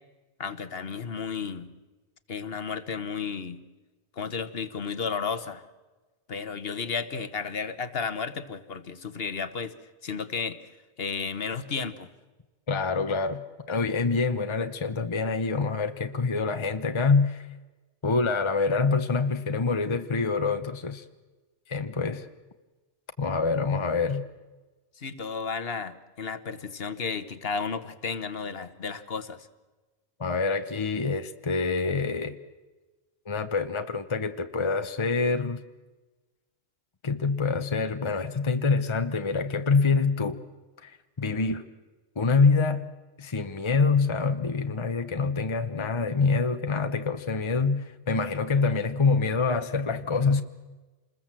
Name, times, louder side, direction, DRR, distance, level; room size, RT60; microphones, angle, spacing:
voice 1, 0.4-1.7 2.3-3.6 4.2-5.6 6.3-9.7 10.0-10.6 11.0-12.1 25.0-29.5, left 5 dB, 60° left, 1.5 m, -33 dB
voice 2, 12.7-17.5 18.0-21.0 21.7-22.3 23.2-24.2 30.2-32.4 33.3-35.6 37.0-40.4 40.8-41.6 42.2-42.8 43.2-50.4, left 4 dB, 30° left, 1.0 m, -26 dB
27.5 x 21.0 x 7.6 m
omnidirectional pair, 1.1 m